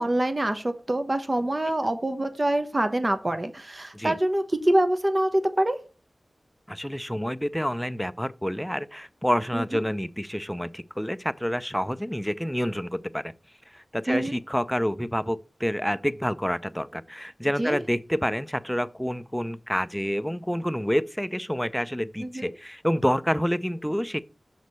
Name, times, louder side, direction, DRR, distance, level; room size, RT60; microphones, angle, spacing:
voice 1, 0.0-5.8 9.5-9.8 14.1-14.4 17.6-17.8 22.2-22.5, right 1 dB, 35° right, 0.9 m, -25 dB
voice 2, 6.7-13.3 13.7-24.2, equal, 5° left, 0.4 m, -28 dB
6.4 x 4.1 x 6.4 m
wide cardioid pair, 60°, 0 cm